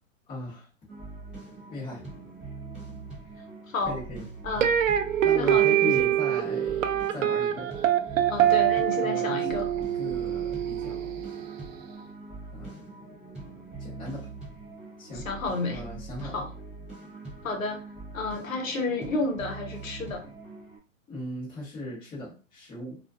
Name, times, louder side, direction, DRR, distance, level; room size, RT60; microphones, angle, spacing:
voice 1, 0.3-0.7 1.7-2.0 3.9-4.3 5.2-7.7 9.0-11.2 12.5-13.0 13.8-14.3 15.0-15.3 15.7-16.4 21.1-23.0, left 1 dB, 10° left, -7 dB, 1.0 m, -38 dB
sound 1, 0.9-20.8, right 3 dB, 5° right, 0.5 m, -43 dB
voice 2, 3.7-4.0 4.4-4.8 5.3-6.1 8.3-9.7 15.1-15.8 16.2-16.5 17.4-17.8 18.1-20.2, left 3 dB, 80° left, 3 dB, 0.8 m, -31 dB
sound 2, 4.6-11.7, right 11 dB, 70° right, 0.5 m, -25 dB
2.4 x 2.3 x 2.4 m, 0.35 s
hypercardioid pair, 145°, 40 cm